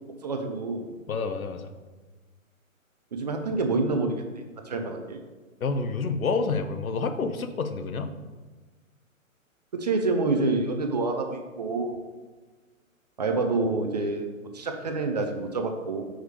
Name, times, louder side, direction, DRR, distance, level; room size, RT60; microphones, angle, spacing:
voice 1, 0.2-0.9 3.1-4.2 4.7-5.2 9.7-12.0 13.2-14.2 14.5-16.0, right 3 dB, 30° right, 5 dB, 0.5 m, -27 dB
voice 2, 1.1-1.7 5.6-8.1, left 4 dB, 90° left, 8 dB, 0.8 m, -28 dB
6.3 x 3.4 x 4.8 m, 1.3 s
hypercardioid pair, 150°, 41 cm